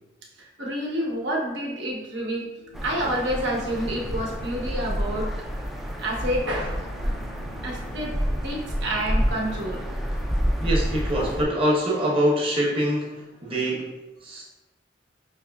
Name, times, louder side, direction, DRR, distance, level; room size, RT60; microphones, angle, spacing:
voice 1, 0.6-2.5 2.8-5.3 6.0-7.1 7.6-8.2 8.4-9.8, equal, 85° right, -2 dB, 0.9 m, -28 dB
sound 1, 2.6-12.6, right 1 dB, 85° left, 0.5 m, -51 dB
sound 2, 2.7-11.4, equal, ahead, 0.3 m, -29 dB
voice 2, 10.6-13.9 14.2-14.4, equal, 30° right, -3 dB, 0.9 m, -24 dB
5.5 x 3.0 x 2.3 m, 1.1 s
head